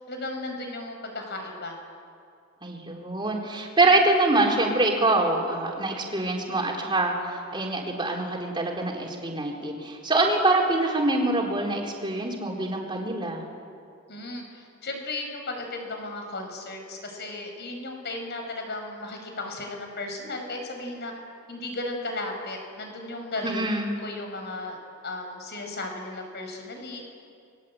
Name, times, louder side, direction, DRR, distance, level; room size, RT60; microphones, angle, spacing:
voice 1, 0.1-1.8 14.1-21.1 21.5-24.8 25.0-27.0, left 2 dB, 50° left, 3 dB, 5.7 m, -35 dB
voice 2, 2.6-13.4 23.4-24.0, right 2 dB, 25° right, 0 dB, 4.0 m, -25 dB
29.0 x 22.0 x 8.6 m, 2.4 s
head